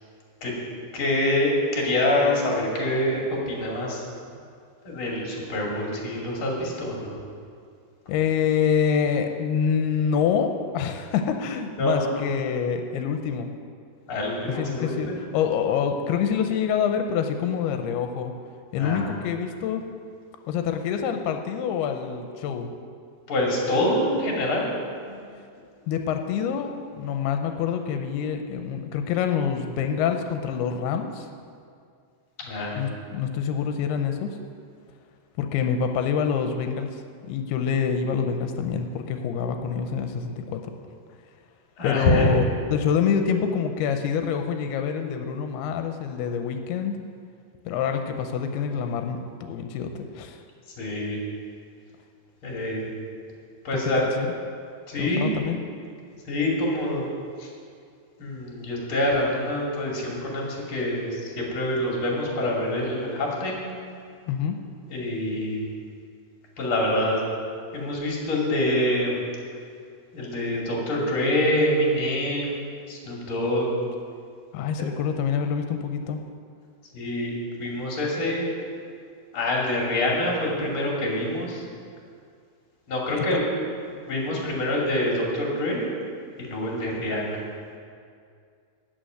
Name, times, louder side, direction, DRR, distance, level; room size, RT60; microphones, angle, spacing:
voice 1, 0.9-3.2 3.5-4.0 4.8-7.1 11.8-12.1 14.1-15.2 18.7-19.1 23.3-24.7 25.1-25.2 32.4-32.8 41.8-42.3 50.8-51.2 52.4-52.9 53.6-54.0 54.9-55.4 56.2-57.0 57.4-57.5 58.2-63.6 64.9-65.6 66.6-67.2 67.7-69.2 70.1-73.7 76.9-77.3 77.6-78.5 79.3-81.6 82.9-83.4 84.1-85.9 86.4-87.4, left 1 dB, 35° left, -3 dB, 3.0 m, -26 dB
voice 2, 8.1-13.5 14.6-18.3 18.7-19.8 20.5-22.7 25.9-31.3 32.8-34.4 35.4-37.0 37.3-40.6 41.8-42.4 42.7-47.0 47.7-50.4 54.0-54.3 55.0-55.6 64.3-64.6 74.5-76.2 83.3-83.4, left 7 dB, 90° left, 6 dB, 2.6 m, -26 dB
13.0 x 6.0 x 9.2 m, 2.3 s
omnidirectional pair, 4.6 m